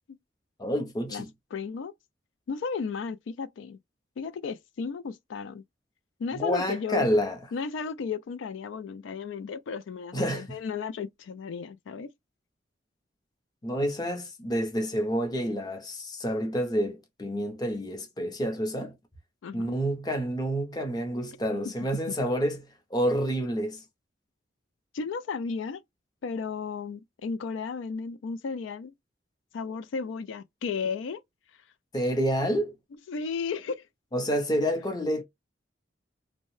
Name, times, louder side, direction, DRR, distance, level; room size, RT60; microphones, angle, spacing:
voice 1, 0.6-1.3 6.3-7.4 10.1-10.6 13.6-18.9 19.5-23.8 31.9-32.8 34.1-35.2, equal, 20° left, 0.6 m, -28 dB
voice 2, 1.5-1.9 2.5-3.8 4.2-5.6 6.2-7.1 7.5-12.1 19.4-19.8 22.1-22.2 24.9-25.8 26.2-28.9 29.5-31.2 33.1-33.9, left 5 dB, 85° left, 0.3 m, -34 dB
2.7 x 2.1 x 3.1 m
head